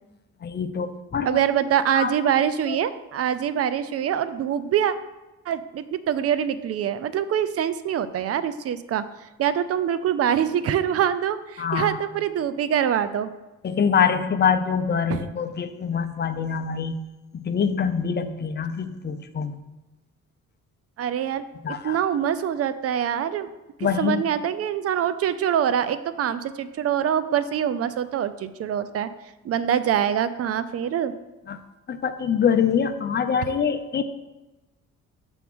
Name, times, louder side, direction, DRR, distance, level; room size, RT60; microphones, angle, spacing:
voice 1, 0.4-1.4 1.9-2.1 2.7-2.8 11.6-12.0 13.6-17.0 17.3-19.6 21.6-22.0 23.8-24.2 31.5-31.6 31.9-34.0, left 7 dB, 35° left, 8 dB, 0.6 m, -24 dB
voice 2, 1.2-4.9 5.5-13.3 15.1-15.2 21.0-23.5 23.8-29.1 29.4-31.2, right 9 dB, 50° right, 13 dB, 0.5 m, -24 dB
6.9 x 3.6 x 6.1 m, 1.1 s
cardioid pair, 90°, 30 cm